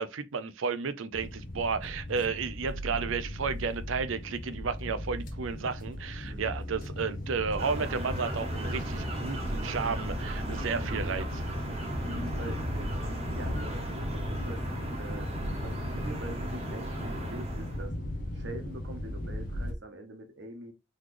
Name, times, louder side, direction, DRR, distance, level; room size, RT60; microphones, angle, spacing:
voice 1, 0.0-11.4, right 5 dB, 75° right, 0.5 m, -32 dB
sound 1, 1.1-19.7, left 1 dB, 40° left, 0.8 m, -36 dB
voice 2, 6.3-6.6 12.0-13.0 13.3-14.7 15.0-15.3 15.6-18.0 18.3-20.7, right 1 dB, 60° right, 1.1 m, -43 dB
sound 2, 7.6-17.9, right 1 dB, 30° right, 1.0 m, -38 dB
4.0 x 3.1 x 3.2 m
head